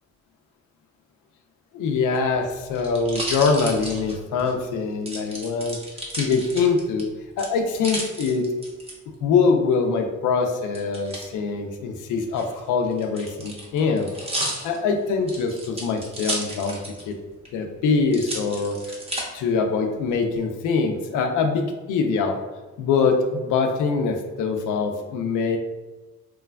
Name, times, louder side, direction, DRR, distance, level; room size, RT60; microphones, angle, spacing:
voice 1, 1.7-5.8 6.1-7.1 7.4-8.5 9.2-14.1 14.6-16.8 17.1-17.2 17.5-19.0 19.3-22.4 22.8-25.6, left 4 dB, 80° left, 4 dB, 0.5 m, -23 dB
sound 1, 2.0-4.5 5.1-7.0 7.4-8.9 10.7-11.3 12.2-17.1 17.4-17.5 18.1-19.2 19.9-20.4, right 1 dB, 20° right, 0.6 m, -33 dB
3.1 x 2.2 x 2.3 m, 1.2 s
cardioid pair, 90°, 30 cm